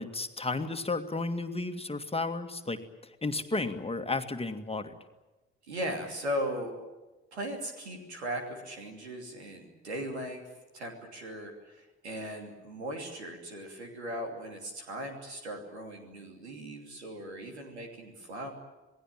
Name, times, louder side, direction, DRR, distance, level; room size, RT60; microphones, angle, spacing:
voice 1, 0.0-4.9, left 3 dB, 20° left, 7 dB, 2.1 m, -33 dB
voice 2, 5.7-6.7 7.3-10.4 10.7-18.5, equal, 80° right, 3 dB, 2.9 m, -38 dB
27.5 x 19.0 x 8.9 m, 1.1 s
figure-of-eight pair, 40°, 33 cm